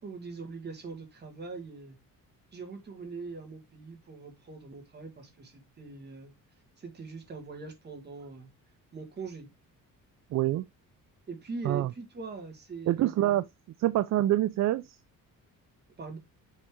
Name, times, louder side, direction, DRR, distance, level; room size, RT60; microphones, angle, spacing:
voice 1, 0.0-2.0 2.5-6.3 6.8-8.5 8.9-9.5 11.3-13.4 16.0-16.2, right 4 dB, 30° right, 1.9 m, -42 dB
voice 2, 10.3-10.6 11.6-11.9 12.9-13.4 13.8-15.0, right 14 dB, 55° right, 0.4 m, -26 dB
6.5 x 4.2 x 3.6 m
cardioid pair, 150°, 34 cm